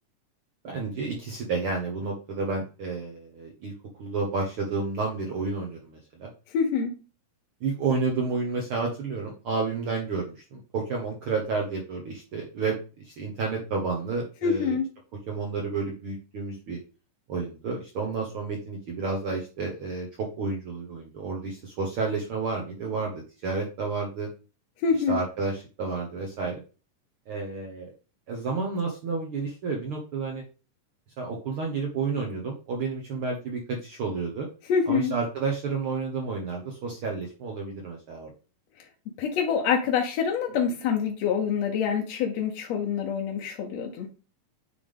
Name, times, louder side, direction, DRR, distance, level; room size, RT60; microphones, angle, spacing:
voice 1, 0.6-3.7 4.0-6.3 7.6-14.8 15.3-16.8 17.3-23.1 23.4-24.3 25.1-26.6 27.3-27.9 28.3-30.4 31.2-34.5 34.9-38.3, right 4 dB, 75° right, 0 dB, 1.2 m, -30 dB
voice 2, 6.5-6.9 14.4-14.8 24.8-25.2 34.7-35.1 39.2-44.1, left 6 dB, 70° left, 0 dB, 1.6 m, -26 dB
9.3 x 3.5 x 3.5 m, 0.33 s
omnidirectional pair, 4.0 m